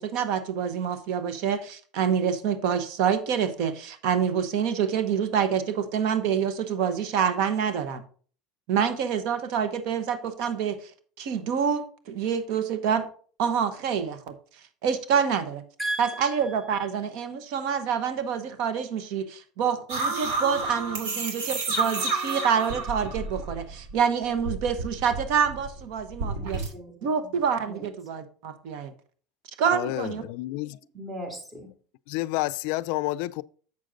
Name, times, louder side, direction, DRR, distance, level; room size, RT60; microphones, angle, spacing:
voice 1, 0.0-8.0 8.7-10.8 11.2-13.1 13.4-14.3 14.8-15.6 16.0-26.6 27.0-28.9 29.6-30.2, right 7 dB, 60° right, 1.0 m, -27 dB
voice 2, 15.8-16.6 21.0-21.5 26.3-27.3 27.6-27.9 30.9-31.7, right 1 dB, 20° right, 2.6 m, -37 dB
sound 1, 19.9-23.9 24.2-26.7, right 3 dB, 80° right, 2.7 m, -30 dB
voice 3, 29.7-30.8 32.1-33.4, left 18 dB, 70° left, 0.3 m, -29 dB
7.3 x 6.4 x 3.8 m
supercardioid pair, 135°, 0 cm